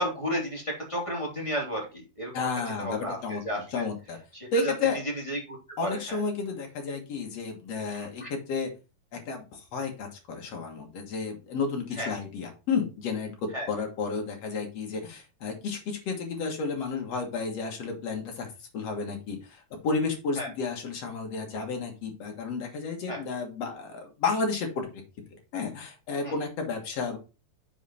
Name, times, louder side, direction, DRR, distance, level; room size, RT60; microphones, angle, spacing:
voice 1, 0.0-1.9 2.2-2.5 2.8-3.9 4.3-4.7 5.3-6.2 7.9-8.3 12.0-12.1 13.5-13.7 20.4-20.5 23.1-23.2 26.2-26.3, equal, 10° left, -3 dB, 2.0 m, -33 dB
voice 2, 2.3-3.4 3.7-4.2 4.5-5.0 5.8-8.7 9.1-18.5 18.7-25.0 25.5-27.2, left 4 dB, 55° left, 2 dB, 2.1 m, -32 dB
7.6 x 4.9 x 4.3 m, 0.30 s
omnidirectional pair, 4.4 m